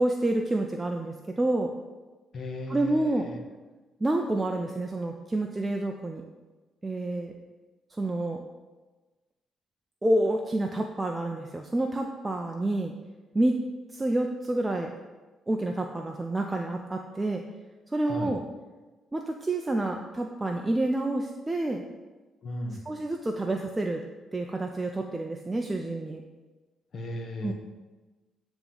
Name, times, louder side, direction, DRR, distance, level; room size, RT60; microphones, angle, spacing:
voice 1, 0.0-1.7 2.7-3.3 4.0-6.2 6.8-7.3 7.9-8.4 10.0-12.9 13.3-13.6 13.9-14.9 15.5-17.4 17.9-18.4 19.1-21.8 22.9-24.0 24.3-26.2 27.4-27.5, right 2 dB, 20° right, 2 dB, 0.4 m, -28 dB
voice 2, 2.3-3.4 18.1-18.3 22.4-22.8 26.9-27.5, left 1 dB, 50° left, 4 dB, 0.9 m, -36 dB
8.8 x 3.0 x 3.8 m, 1.2 s
cardioid pair, 90°, 0 cm